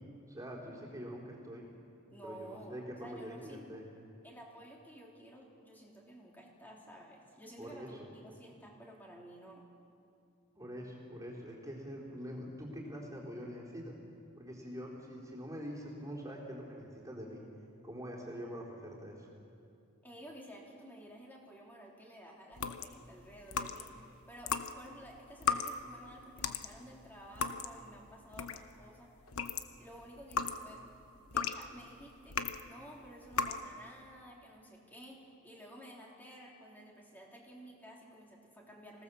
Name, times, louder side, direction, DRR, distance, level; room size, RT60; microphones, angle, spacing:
voice 1, 0.3-1.7 2.2-3.8 7.6-8.1 10.5-13.9 14.4-17.4 17.8-19.3, equal, 15° right, -4 dB, 3.9 m, -44 dB
voice 2, 2.1-3.7 4.2-9.6 20.0-29.1 29.8-39.0, equal, 10° left, -2 dB, 3.3 m, -53 dB
sound 1, 22.5-24.0 24.4-28.8 29.2-32.7 33.3-33.7, left 6 dB, 75° left, 1.0 m, -37 dB
25.5 x 18.0 x 7.1 m, 2.5 s
head